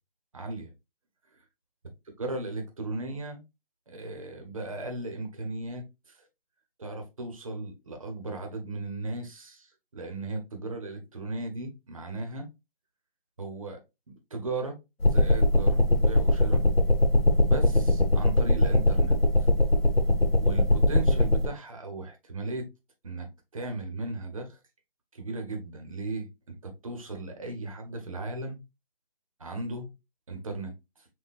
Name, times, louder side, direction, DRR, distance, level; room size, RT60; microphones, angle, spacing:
voice 1, 0.3-0.7 2.2-3.4 3.9-6.2 6.8-12.5 13.4-13.8 14.3-16.6 17.5-19.5 20.4-22.7 23.0-24.6 25.1-28.6 29.4-29.9 30.3-31.1, right 2 dB, 35° right, 1.2 m, -36 dB
sound 1, 15.0-21.5, left 1 dB, 85° left, 1.2 m, -22 dB
6.9 x 2.7 x 2.5 m
figure-of-eight pair, 170°, 29 cm